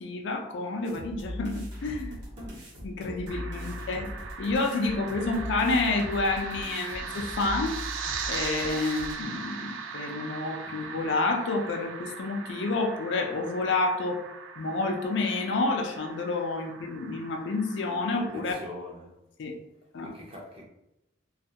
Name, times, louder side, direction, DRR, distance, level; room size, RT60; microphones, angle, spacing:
voice 1, 0.0-2.2 2.8-7.8 8.3-14.2 14.6-18.5 19.4-19.5 19.9-20.1, left 3 dB, 65° left, 0.4 m, -29 dB
sound 1, 0.8-9.1, equal, 60° right, 0.9 m, -40 dB
voice 2, 2.4-2.7 3.6-3.8 5.2-5.3 10.6-11.0 18.3-19.3 20.0-20.6, left 1 dB, 30° right, 0.6 m, -44 dB
sound 2, 3.3-18.6, right 5 dB, 80° right, 0.3 m, -40 dB
2.4 x 2.3 x 2.7 m
head